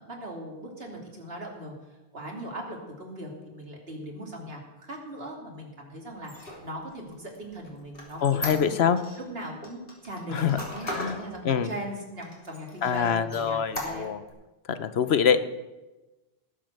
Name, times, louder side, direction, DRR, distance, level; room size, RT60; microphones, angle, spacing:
voice 1, 0.0-8.8 9.2-14.1, right 1 dB, 75° right, -1 dB, 3.2 m, -39 dB
Squeak, 6.2-9.2 9.6-11.2 11.7-11.8 12.2-12.9 13.3-14.3, left 1 dB, 65° left, 3.4 m, -37 dB
voice 2, 8.2-9.0 10.3-10.6 10.9-11.2 11.4-11.7 12.8-14.2 14.7-15.4, left 7 dB, 85° left, 12 dB, 1.1 m, -24 dB
19.0 x 7.6 x 6.6 m, 1.1 s
omnidirectional pair, 1.0 m